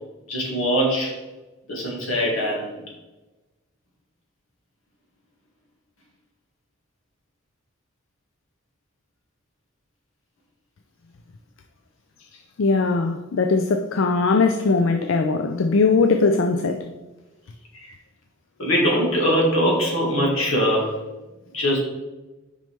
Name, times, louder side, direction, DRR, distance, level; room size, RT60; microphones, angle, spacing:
voice 1, 0.3-1.1 1.7-2.8 17.7-17.9 18.6-20.9 21.5-21.8, equal, 85° left, 2.2 m, -22 dB
voice 2, 12.6-16.8, left 4 dB, 70° left, 0.4 m, -20 dB
6.1 x 5.4 x 3.5 m
head